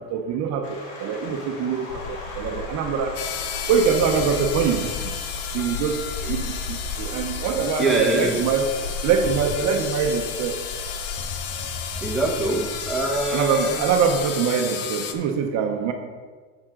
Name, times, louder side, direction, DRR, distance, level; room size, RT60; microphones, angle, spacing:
voice 1, 0.0-3.1 3.7-4.9 5.5-6.0 6.3-8.7 9.0-10.6 13.3-15.9, right 6 dB, 50° right, 4 dB, 0.8 m, -23 dB
sound 1, 0.6-15.3, left 2 dB, 65° left, 1.8 m, -42 dB
sound 2, 1.9-14.2, left 4 dB, 80° left, 0.9 m, -36 dB
sound 3, 3.2-15.1, left 8 dB, 40° left, 0.7 m, -33 dB
voice 2, 7.8-8.4 11.6-11.7 12.0-13.8, right 2 dB, ahead, -3 dB, 1.1 m, -24 dB
7.7 x 7.2 x 3.8 m, 1.5 s
cardioid pair, 140°, 38 cm